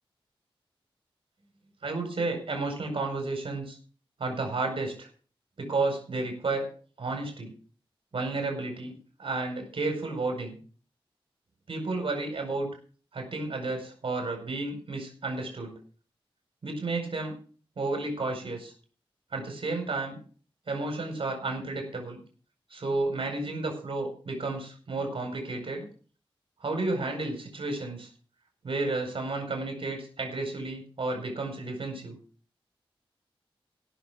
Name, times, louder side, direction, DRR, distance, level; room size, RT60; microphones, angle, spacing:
voice 1, 1.8-3.8 4.2-5.1 5.6-6.7 7.0-7.5 8.1-10.6 11.7-12.7 13.1-15.8 16.6-17.3 17.8-18.7 19.3-20.2 20.7-22.2 22.7-25.9 26.6-28.1 28.6-32.2, right 3 dB, 65° right, 3 dB, 5.1 m, -32 dB
16.5 x 6.8 x 6.1 m, 0.41 s
wide cardioid pair, 120°, 10 cm